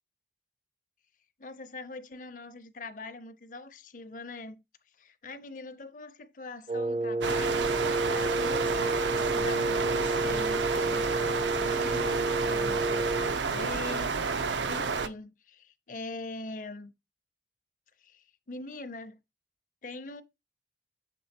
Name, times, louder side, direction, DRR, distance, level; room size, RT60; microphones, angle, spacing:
voice 1, 1.4-4.6 5.0-16.9 18.0-19.2 19.8-20.2, left 3 dB, 45° left, 0.6 m, -43 dB
Wind instrument woodwind instrument, 6.7-13.4, right 2 dB, 35° right, 0.3 m, -30 dB
sound 1, 7.2-15.1, right 5 dB, 90° right, 0.6 m, -30 dB
6.8 x 3.5 x 4.3 m
head